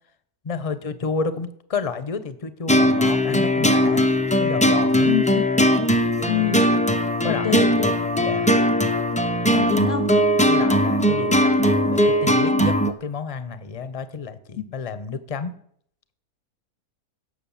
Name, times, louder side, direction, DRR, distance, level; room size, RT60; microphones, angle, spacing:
voice 1, 0.4-4.1 4.4-5.1 7.2-7.7 8.2-8.5 10.5-15.5, left 5 dB, 30° left, 13 dB, 0.8 m, -30 dB
sound 1, 2.7-12.9, equal, 10° left, 0.4 m, -19 dB
voice 2, 5.0-5.5 6.3-6.7 7.3-7.9 9.5-10.1 14.6-14.7, left 11 dB, 55° left, 8 dB, 0.7 m, -26 dB
16.5 x 6.6 x 7.2 m, 0.67 s
omnidirectional pair, 1.6 m